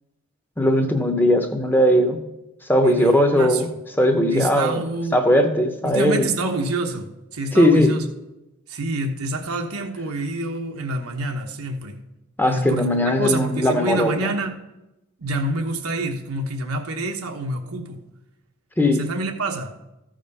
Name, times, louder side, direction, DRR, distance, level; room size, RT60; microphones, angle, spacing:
voice 1, 0.6-2.2 2.7-3.7 4.0-4.9 5.1-6.3 7.5-8.0 12.4-14.3 18.8-19.0, left 1 dB, 10° left, 6 dB, 0.7 m, -18 dB
voice 2, 2.8-3.8 4.3-5.2 5.8-8.0 8.7-12.0 12.4-14.6 15.2-18.0 19.0-19.7, right 2 dB, 90° right, 4 dB, 1.1 m, -27 dB
14.0 x 5.1 x 5.4 m, 0.97 s
head